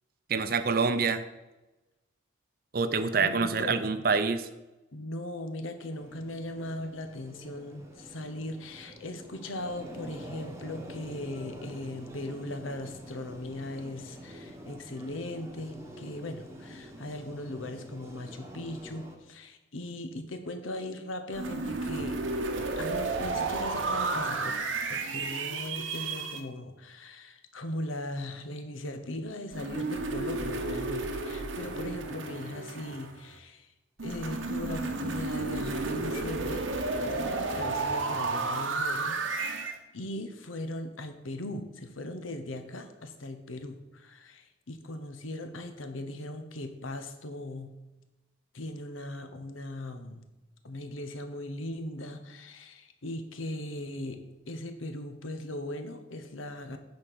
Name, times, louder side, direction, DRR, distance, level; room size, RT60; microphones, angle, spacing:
voice 1, 0.3-1.2 2.7-4.5, right 4 dB, 50° right, 11 dB, 0.6 m, -26 dB
voice 2, 3.2-3.9 4.9-22.2 22.8-24.6 24.9-33.7 34.0-36.7 37.0-39.6 39.9-47.8 48.5-50.2 50.6-56.8, left 1 dB, 90° left, 8 dB, 1.0 m, -39 dB
sound 1, 5.9-19.2, equal, 15° right, 1.0 m, -47 dB
sound 2, 21.3-26.4 29.5-33.3 34.0-39.8, right 3 dB, 80° right, 1.0 m, -32 dB
9.7 x 4.4 x 6.2 m, 1.0 s
head